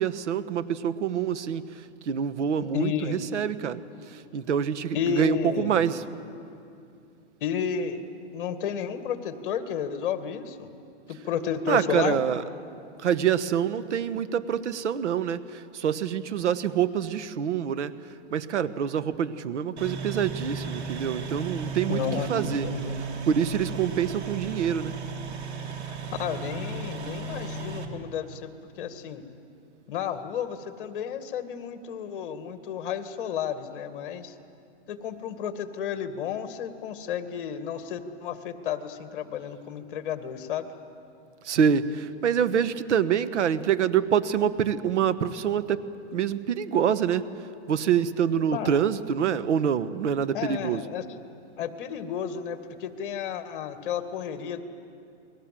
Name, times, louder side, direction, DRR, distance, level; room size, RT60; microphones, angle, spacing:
voice 1, 0.0-6.0 11.7-12.4 13.0-22.0 22.3-22.7 23.3-25.0 41.4-45.8 46.1-47.3 47.7-50.8, right 8 dB, 85° right, 13 dB, 1.3 m, -26 dB
voice 2, 2.7-3.2 4.9-5.8 7.4-8.0 8.3-10.7 11.1-12.2 21.9-23.0 25.9-29.2 29.9-34.3 34.9-40.7 48.5-48.7 50.3-51.0 51.6-54.6, left 8 dB, 45° left, 9 dB, 2.0 m, -32 dB
sound 1, 19.8-27.9, right 5 dB, 70° right, 3.7 m, -35 dB
30.0 x 21.5 x 7.6 m, 2.5 s
hypercardioid pair, 165°, 35 cm